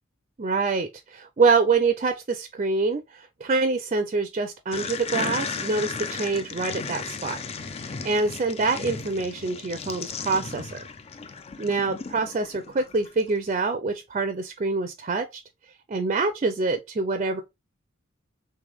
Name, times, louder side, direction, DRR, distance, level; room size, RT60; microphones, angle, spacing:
voice 1, 0.4-7.4 7.8-10.8 11.6-15.4 15.9-17.4, right 4 dB, 35° right, 0.5 m, -25 dB
sound 1, 4.7-13.3, left 5 dB, 30° left, 0.4 m, -35 dB
3.4 x 3.3 x 3.5 m
head